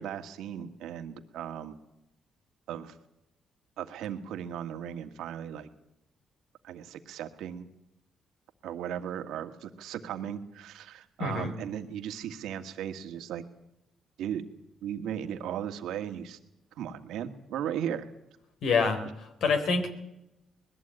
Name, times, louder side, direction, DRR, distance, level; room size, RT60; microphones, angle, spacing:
voice 1, 0.0-1.8 2.7-2.9 3.8-5.7 6.6-7.7 8.6-13.4 14.2-14.5 14.8-16.4 16.8-18.1, right 9 dB, 85° right, 7 dB, 1.8 m, -36 dB
voice 2, 11.2-11.5 18.6-19.9, left 4 dB, 70° left, 7 dB, 3.7 m, -27 dB
20.5 x 14.5 x 9.0 m, 0.90 s
cardioid pair, 90°, 0 cm